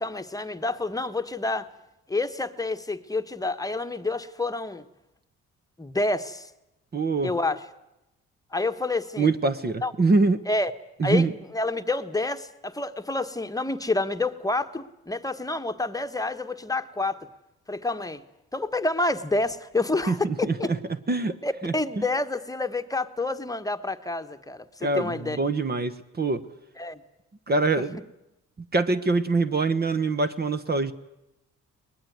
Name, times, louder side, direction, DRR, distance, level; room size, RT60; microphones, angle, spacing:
voice 1, 0.0-1.7 2.1-4.9 5.8-6.5 7.2-7.6 8.5-9.3 9.8-9.9 10.5-10.7 11.0-11.3 11.5-17.3 17.7-18.2 18.5-20.7 21.4-25.4 26.8-27.0, left 2 dB, 10° left, 9 dB, 1.3 m, -28 dB
voice 2, 6.9-7.3 9.2-10.4 11.0-11.3 20.1-20.8 21.1-21.4 21.6-21.7 24.8-26.4 27.5-28.0 28.7-30.9, right 3 dB, 30° right, 12 dB, 1.1 m, -24 dB
22.0 x 20.0 x 9.4 m, 0.92 s
cardioid pair, 90°, 30 cm